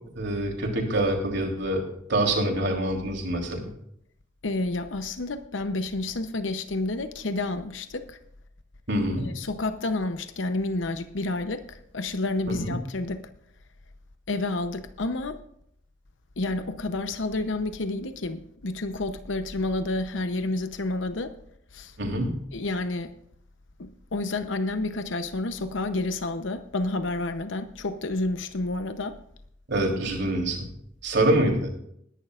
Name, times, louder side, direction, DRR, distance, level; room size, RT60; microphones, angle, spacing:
voice 1, 0.2-1.8 2.1-3.7 8.9-9.3 12.5-12.8 22.0-22.4 29.7-30.7 31.0-31.8, right 1 dB, 65° right, 1 dB, 3.5 m, -25 dB
voice 2, 4.4-8.2 9.2-13.2 14.3-15.4 16.4-21.3 21.7-21.9 22.5-23.1 23.8-29.2, left 2 dB, 80° left, 9 dB, 0.8 m, -30 dB
20.5 x 11.0 x 2.5 m, 0.70 s
head